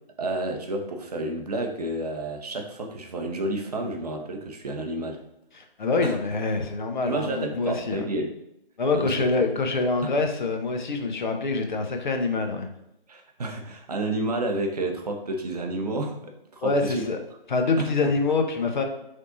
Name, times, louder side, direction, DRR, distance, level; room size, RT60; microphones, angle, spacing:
voice 1, 0.2-5.2 6.0-6.1 7.1-8.4 8.9-9.2 13.1-17.0 17.8-18.1, right 2 dB, 45° right, 4 dB, 0.6 m, -30 dB
voice 2, 5.5-8.0 8.8-12.7 16.6-17.2 17.5-18.8, left 3 dB, 55° left, 5 dB, 0.7 m, -25 dB
4.1 x 3.4 x 2.6 m, 0.84 s
figure-of-eight pair, 145°, 29 cm